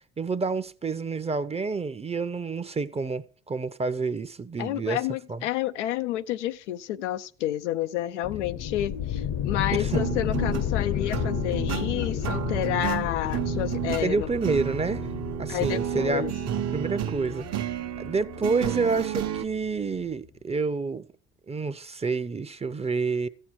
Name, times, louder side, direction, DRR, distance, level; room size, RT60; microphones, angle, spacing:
voice 1, 0.2-5.0 5.3-5.4 9.7-10.1 14.0-15.1 15.4-16.2 16.7-21.1 21.5-23.3, right 4 dB, 20° right, 0.7 m, -29 dB
voice 2, 4.6-14.3 15.5-16.3, left 12 dB, 85° left, 0.5 m, -30 dB
sound 1, 8.2-19.7, left 10 dB, 50° left, 0.8 m, -32 dB
sound 2, 9.9-19.4, right 11 dB, 50° right, 1.0 m, -32 dB
14.0 x 7.6 x 4.7 m
hypercardioid pair, 65°, 34 cm